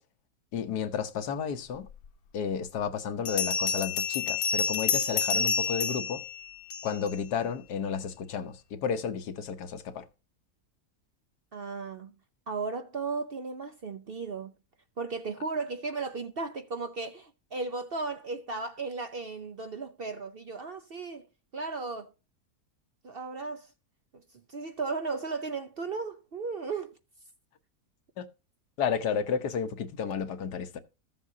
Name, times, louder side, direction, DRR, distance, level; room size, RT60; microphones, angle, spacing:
voice 1, 0.5-1.9 2.3-6.2 6.8-10.1 28.2-28.3 28.8-30.8, left 7 dB, 85° left, 1.5 m, -32 dB
Bell, 2.0-2.1 3.3-7.1, left 6 dB, 65° left, 1.4 m, -29 dB
voice 2, 11.5-12.1 12.5-14.5 15.0-21.3 21.5-22.1 23.0-23.7 24.1-27.0, right 4 dB, 50° right, 0.7 m, -35 dB
14.0 x 7.4 x 2.7 m
omnidirectional pair, 1.7 m